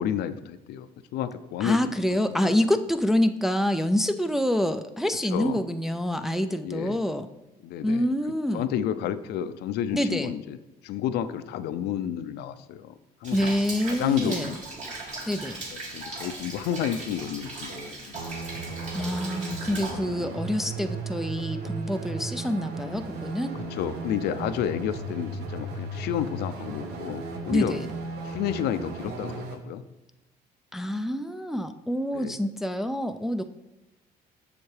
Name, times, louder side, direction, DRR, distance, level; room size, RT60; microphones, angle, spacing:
voice 1, 0.0-1.9 2.3-2.5 5.3-5.6 6.6-7.0 7.6-8.1 8.5-10.6 10.8-13.5 13.9-14.6 15.7-18.2 23.7-27.7 28.2-29.8 32.1-32.4, left 10 dB, 75° left, 12 dB, 0.4 m, -31 dB
voice 2, 1.6-7.3 7.8-8.7 9.9-10.3 13.3-14.5 15.3-15.6 18.9-23.5 27.5-27.9 30.7-33.4, equal, ahead, 7 dB, 0.3 m, -27 dB
Rain, 13.2-19.9, right 2 dB, 45° right, 2.3 m, -38 dB
sound 1, 18.1-29.6, right 3 dB, 75° right, 1.0 m, -35 dB
7.1 x 6.6 x 3.3 m, 0.96 s
cardioid pair, 110°, 17 cm